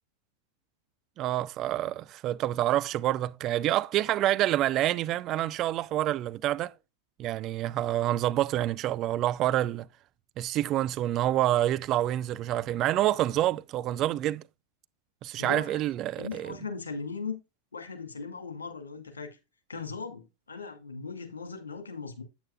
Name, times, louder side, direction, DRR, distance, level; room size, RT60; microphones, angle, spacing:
voice 1, 1.2-6.7 7.2-9.9 10.4-14.4 15.2-16.5, right 13 dB, 35° right, 0.4 m, -27 dB
voice 2, 15.4-15.8 16.2-17.4 17.7-19.3 19.7-22.2, left 4 dB, 70° left, 2.3 m, -38 dB
8.8 x 8.6 x 2.3 m
figure-of-eight pair, 90°, 0 cm